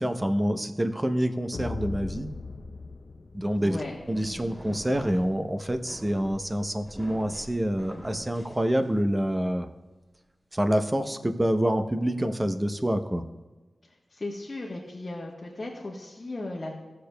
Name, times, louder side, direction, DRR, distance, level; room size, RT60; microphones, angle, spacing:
voice 1, 0.0-2.3 3.3-3.8 4.1-9.7 10.5-13.2, equal, 20° right, 7 dB, 0.7 m, -27 dB
sound 1, 1.5-4.1, left 3 dB, 70° left, 0.6 m, -38 dB
sound 2, 3.5-9.2, equal, 5° right, 2.7 m, -45 dB
voice 2, 3.6-4.0 14.1-16.7, left 2 dB, 45° left, -3 dB, 1.2 m, -36 dB
15.5 x 6.7 x 2.2 m, 1.2 s
cardioid pair, 55°, 0 cm